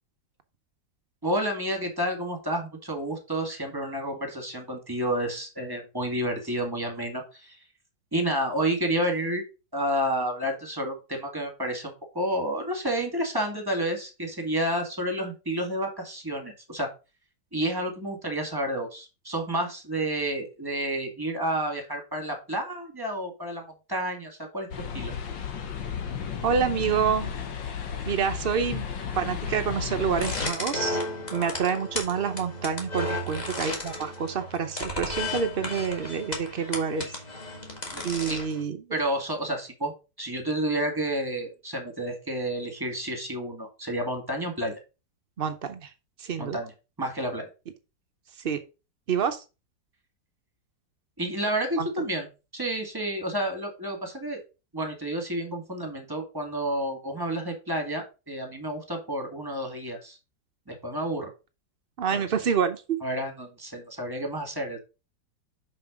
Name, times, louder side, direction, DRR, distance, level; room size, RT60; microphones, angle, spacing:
voice 1, 1.2-7.7 8.1-9.4 9.7-16.9 17.5-25.1 37.9-38.4 38.9-39.9 40.2-44.8 46.4-46.7 47.0-47.5 51.2-52.3 52.5-54.4 54.7-60.2 60.7-61.3 62.1-62.3 63.0-64.8, right 1 dB, 10° right, 4 dB, 1.9 m, -30 dB
sound 1, 24.7-30.5, left 7 dB, 80° left, 1.8 m, -33 dB
voice 2, 26.4-27.3 28.1-28.9 29.2-31.0 31.3-37.1 38.0-38.8 45.4-45.9 46.2-46.6 48.4-48.6 49.1-49.4 51.8-51.9 62.0-63.0, right 7 dB, 90° right, 8 dB, 0.5 m, -27 dB
sound 2, 30.1-38.6, left 1 dB, 25° left, 1.8 m, -34 dB
5.9 x 5.8 x 5.1 m, 0.30 s
omnidirectional pair, 2.0 m